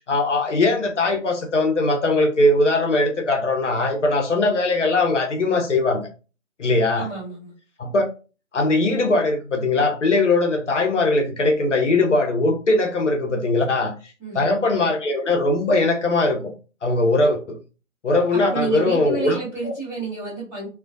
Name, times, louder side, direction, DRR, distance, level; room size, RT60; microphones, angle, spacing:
voice 1, 0.0-6.0 6.6-7.1 7.8-8.0 8.5-13.9 14.3-16.4 16.8-17.6 18.0-19.4 19.6-19.7, left 2 dB, 65° left, 3 dB, 0.7 m, -20 dB
voice 2, 7.0-7.5 14.2-14.6 18.3-20.7, right 4 dB, 5° right, -12 dB, 0.8 m, -30 dB
2.2 x 2.2 x 2.5 m, 0.34 s
figure-of-eight pair, 145°, 39 cm